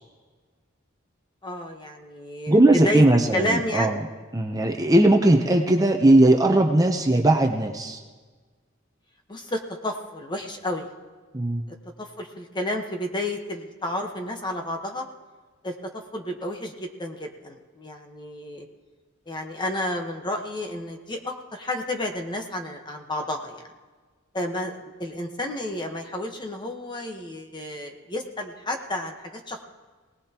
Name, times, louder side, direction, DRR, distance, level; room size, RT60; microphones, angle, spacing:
voice 1, 1.4-3.0 3.3-4.0 9.3-10.9 12.0-15.0 15.6-18.7 19.3-23.7 24.3-29.6, left 1 dB, 20° left, 3 dB, 1.2 m, -31 dB
voice 2, 2.5-4.0 4.3-8.0 11.3-11.6, right 1 dB, 20° right, 3 dB, 0.8 m, -19 dB
22.5 x 18.5 x 3.0 m, 1.4 s
head